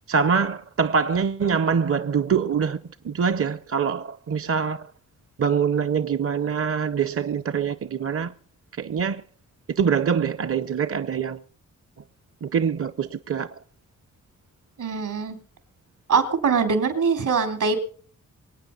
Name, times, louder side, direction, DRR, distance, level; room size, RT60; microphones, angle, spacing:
voice 1, 0.1-2.8 3.0-4.9 5.4-8.3 8.7-9.2 9.8-11.4 12.4-13.6, right 6 dB, 45° right, 0.7 m, -24 dB
voice 2, 14.8-15.4 16.1-17.8, right 5 dB, 75° right, 3.9 m, -22 dB
24.5 x 9.1 x 5.4 m
cardioid pair, 85°, 31 cm